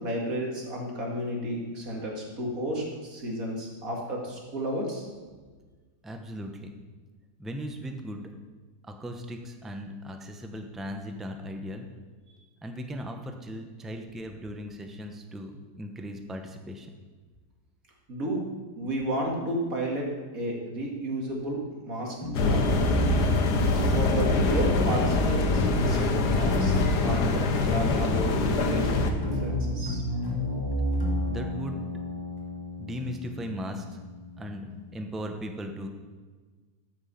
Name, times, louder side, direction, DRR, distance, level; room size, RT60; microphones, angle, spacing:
voice 1, 0.0-5.1 18.1-18.4 18.8-22.6 23.7-26.7 27.0-30.1, right 1 dB, 60° right, -1 dB, 2.6 m, -32 dB
voice 2, 6.0-6.7 7.4-8.3 8.8-11.9 12.6-16.9 31.2-31.9 32.8-33.8 34.4-35.9, equal, ahead, 4 dB, 0.5 m, -37 dB
sound 1, 22.2-35.0, equal, 15° left, 1.6 m, -31 dB
sound 2, 22.3-29.1, left 3 dB, 85° left, 1.6 m, -24 dB
13.5 x 6.2 x 5.7 m, 1.4 s
omnidirectional pair, 1.7 m